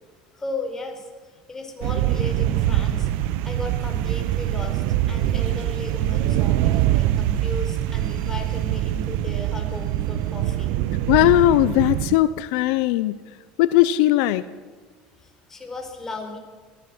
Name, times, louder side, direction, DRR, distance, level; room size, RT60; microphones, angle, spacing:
voice 1, 0.3-3.1 3.4-10.7 15.2-16.4, left 2 dB, 15° left, 3 dB, 4.8 m, -35 dB
sound 1, 1.8-12.2, right 13 dB, 75° right, 1.0 m, -23 dB
voice 2, 11.1-13.2 13.6-14.4, left 15 dB, 80° left, 15 dB, 0.7 m, -18 dB
23.0 x 15.5 x 7.9 m, 1.5 s
supercardioid pair, 125°, 3 cm